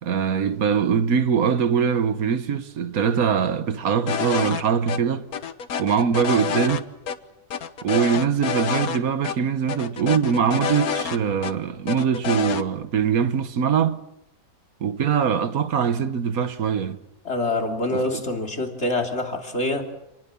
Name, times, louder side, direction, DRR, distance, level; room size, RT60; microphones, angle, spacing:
voice 1, 0.0-5.3 5.8-6.9 7.8-14.0 14.8-17.0 17.9-18.2, right 7 dB, 80° right, 1.6 m, -22 dB
sound 1, 4.1-4.6 4.9-5.0 5.3-6.8 7.1-7.2 7.5-9.0 9.2-9.4 9.7-11.5 11.9-12.6, left 7 dB, 90° left, 1.6 m, -27 dB
voice 2, 17.2-19.8, left 2 dB, 50° left, 3.3 m, -25 dB
27.5 x 20.0 x 7.1 m
omnidirectional pair, 1.5 m